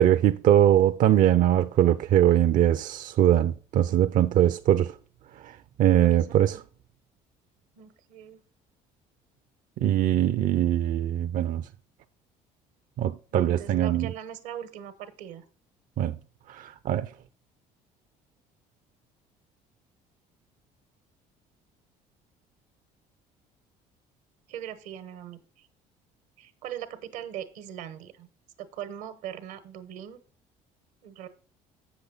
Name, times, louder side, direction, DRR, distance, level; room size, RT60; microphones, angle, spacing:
voice 1, 0.0-4.9 5.4-6.6 9.8-11.6 13.0-14.1 16.0-16.2 16.5-17.1, right 11 dB, 60° right, 0.5 m, -22 dB
voice 2, 6.0-6.6 7.8-8.4 13.3-15.5 24.5-25.7 26.4-28.3 28.6-30.2 31.0-31.3, right 10 dB, 85° right, 1.2 m, -40 dB
7.9 x 7.0 x 4.0 m
supercardioid pair, 80°, 16 cm